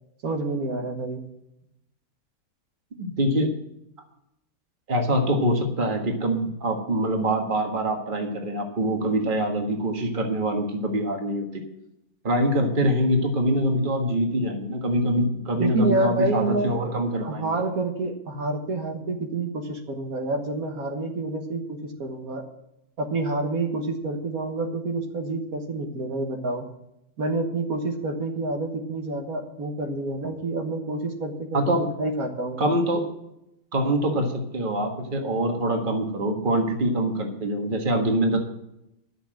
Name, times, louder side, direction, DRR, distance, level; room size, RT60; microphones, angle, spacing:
voice 1, 0.2-1.2 15.6-16.9 17.2-22.4 23.0-26.7 27.2-32.6, right 2 dB, 75° right, 3 dB, 1.9 m, -28 dB
voice 2, 3.0-3.5 4.9-11.6 12.2-17.6 31.5-31.8 32.6-33.0 33.7-38.4, right 1 dB, 35° right, 3 dB, 1.7 m, -24 dB
11.0 x 6.9 x 7.6 m, 0.85 s
omnidirectional pair, 1.5 m